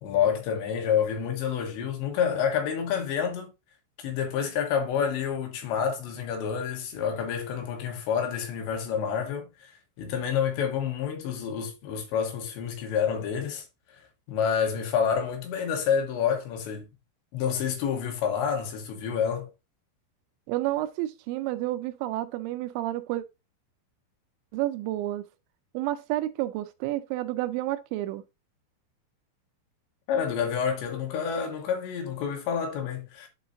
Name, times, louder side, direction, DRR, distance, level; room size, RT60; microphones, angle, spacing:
voice 1, 0.0-3.5 4.0-13.6 14.3-16.9 17.3-19.5 30.1-33.3, left 7 dB, 75° left, 3.1 m, -28 dB
voice 2, 20.5-23.2 24.5-25.3 25.7-28.2, right 15 dB, 85° right, 2.8 m, -30 dB
11.5 x 3.9 x 2.6 m
omnidirectional pair, 5.6 m